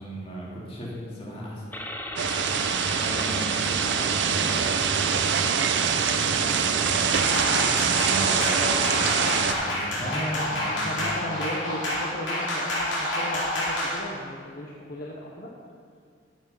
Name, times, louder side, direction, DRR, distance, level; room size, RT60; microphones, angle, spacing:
voice 1, 0.0-1.7 2.9-5.0 6.3-11.2, equal, 35° left, -5 dB, 2.7 m, -36 dB
sound 1, 1.7-9.4, left 1 dB, 10° left, 0.9 m, -34 dB
sound 2, 2.2-9.5, right 7 dB, 70° right, 0.5 m, -24 dB
voice 2, 4.0-4.5 10.8-15.5, left 1 dB, 55° left, -2 dB, 1.1 m, -36 dB
sound 3, 7.1-14.0, left 1 dB, 80° left, 3.3 m, -29 dB
12.5 x 7.1 x 5.5 m, 2.1 s
head